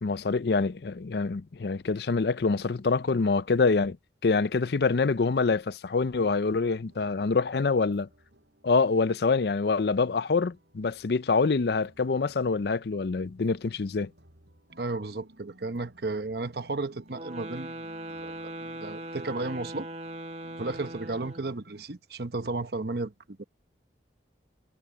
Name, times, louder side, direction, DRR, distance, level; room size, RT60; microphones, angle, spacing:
voice 1, 0.0-4.0 4.2-8.1 8.6-14.1, left 4 dB, 65° left, 0.5 m, -25 dB
sound 1, 6.7-21.9, right 1 dB, 75° right, 6.2 m, -59 dB
voice 2, 14.8-17.8 18.2-18.5 18.8-19.9 20.6-23.4, right 3 dB, 60° right, 1.0 m, -33 dB
sound 2, 17.1-21.6, right 1 dB, 35° right, 1.2 m, -40 dB
head